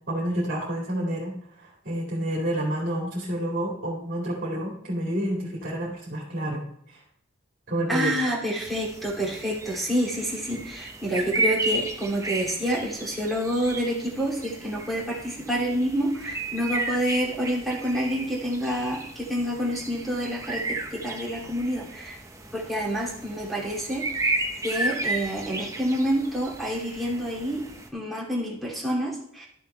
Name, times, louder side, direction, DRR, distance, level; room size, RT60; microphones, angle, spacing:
voice 1, 0.1-7.0 7.7-8.1, right 1 dB, 45° right, -3 dB, 2.2 m, -29 dB
voice 2, 7.9-22.2 22.5-24.4 24.6-27.6 27.9-29.5, equal, ahead, -4 dB, 2.5 m, -28 dB
sound 1, 8.6-27.9, right 2 dB, 15° right, 1.0 m, -33 dB
11.5 x 6.9 x 3.2 m, 0.71 s
head